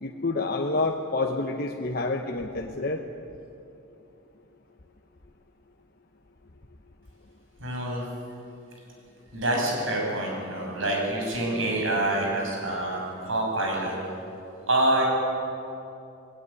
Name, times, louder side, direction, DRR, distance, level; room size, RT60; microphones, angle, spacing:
voice 1, 0.0-3.0, left 3 dB, 50° left, 2 dB, 1.0 m, -28 dB
voice 2, 7.6-8.1 9.3-14.0 14.7-15.0, right 1 dB, 75° right, -1 dB, 6.8 m, -26 dB
19.5 x 17.5 x 9.8 m, 2.8 s
head